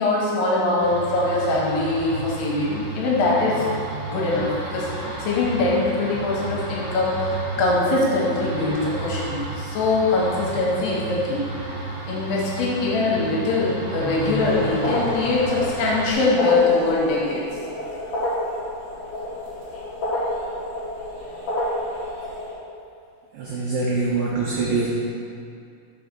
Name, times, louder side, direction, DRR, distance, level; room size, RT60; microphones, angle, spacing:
voice 1, 0.0-3.7 4.1-7.3 7.6-11.5 12.1-17.4, left 3 dB, 75° left, -4 dB, 2.6 m, -22 dB
sound 1, 0.8-16.1, right 3 dB, 60° right, 2.8 m, -32 dB
sound 2, 14.2-22.5, left 1 dB, 50° left, 1.9 m, -29 dB
voice 2, 23.3-24.9, right 3 dB, 90° right, -5 dB, 2.0 m, -24 dB
5.5 x 5.4 x 5.9 m, 2.4 s
omnidirectional pair, 5.2 m